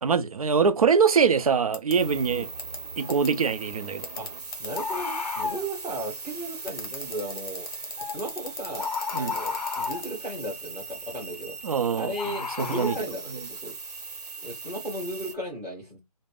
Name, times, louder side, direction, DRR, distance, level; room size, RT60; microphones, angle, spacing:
voice 1, 0.0-2.5 3.0-4.1 9.1-9.3 11.6-12.1 12.6-13.0 13.3-13.4, right 6 dB, 65° right, 0.5 m, -23 dB
sound 1, 1.7-1.9 2.6-2.8 3.1-3.3 4.0-4.8 6.7-10.1, left 4 dB, 35° left, 0.7 m, -36 dB
sound 2, 1.9-15.3, right 4 dB, 80° right, 0.9 m, -40 dB
Bird, 3.0-3.2 4.7-5.7 8.0-8.2 8.8-10.1 12.2-13.0, left 5 dB, 85° left, 0.5 m, -32 dB
voice 2, 4.6-7.7 8.1-11.5 11.9-13.7 14.4-16.0, right 1 dB, ahead, 0.4 m, -35 dB
2.3 x 2.0 x 3.4 m
figure-of-eight pair, 155°, 20 cm